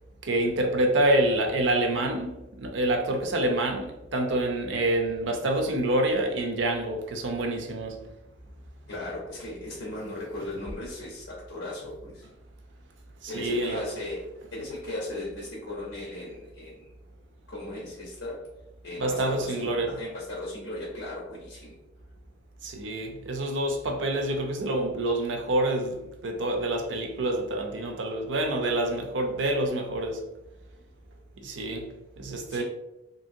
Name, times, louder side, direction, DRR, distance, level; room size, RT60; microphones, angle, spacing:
voice 1, 0.2-8.0 13.2-13.9 19.0-20.0 22.6-30.2 31.4-31.9 32.2-32.6, right 1 dB, 85° right, 0.5 m, -27 dB
voice 2, 8.9-12.3 13.3-16.9 17.5-18.4 18.8-21.8 32.5-32.6, left 1 dB, 75° left, 0.8 m, -37 dB
3.0 x 2.7 x 2.6 m
head